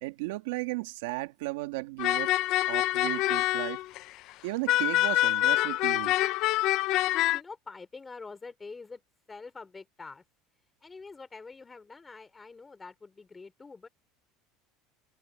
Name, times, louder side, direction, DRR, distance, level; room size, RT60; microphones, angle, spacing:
voice 1, 0.0-2.3 2.7-3.8 4.4-6.2, right 21 dB, 90° right, 2.3 m, -35 dB
sound 1, 2.0-4.0 4.7-7.4, left 16 dB, 55° left, 0.6 m, -26 dB
voice 2, 7.3-9.0 9.3-10.2 10.8-13.9, left 4 dB, 15° left, 4.2 m, -45 dB
cardioid pair, 145°, 0 cm